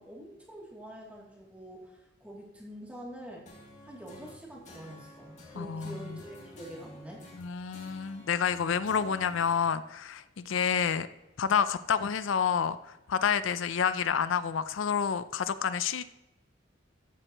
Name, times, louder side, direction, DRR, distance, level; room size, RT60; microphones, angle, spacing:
voice 1, 0.0-3.5 3.8-7.3, right 1 dB, 5° right, -4 dB, 2.7 m, -46 dB
sound 1, 3.5-9.6, left 1 dB, 35° left, 2.5 m, -52 dB
voice 2, 5.6-6.2 7.3-11.1 11.4-16.0, left 7 dB, 80° left, 14 dB, 0.5 m, -29 dB
14.0 x 8.8 x 3.0 m, 1.0 s
head